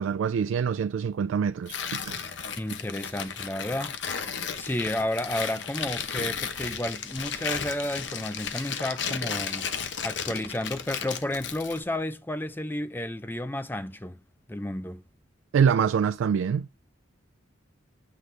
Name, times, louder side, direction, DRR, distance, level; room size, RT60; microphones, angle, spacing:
voice 1, 0.0-2.2 15.5-16.7, right 7 dB, 85° right, 0.3 m, -25 dB
Tearing, 1.7-11.8, left 7 dB, 65° left, 0.9 m, -34 dB
voice 2, 2.6-4.0 4.6-9.7 10.0-14.2 14.5-15.0, left 1 dB, 10° left, 0.5 m, -32 dB
8.0 x 5.9 x 3.2 m
head